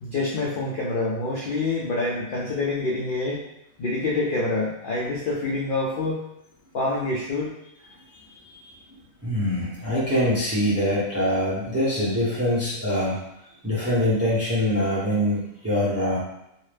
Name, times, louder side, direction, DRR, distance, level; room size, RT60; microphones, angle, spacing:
voice 1, 0.0-3.4 3.8-6.3 6.7-7.5 7.8-8.7, left 2 dB, 65° left, -5 dB, 0.5 m, -27 dB
voice 2, 9.2-13.2 13.6-16.2, left 1 dB, 15° right, -8 dB, 0.5 m, -24 dB
2.7 x 2.1 x 3.3 m, 0.84 s
omnidirectional pair, 1.4 m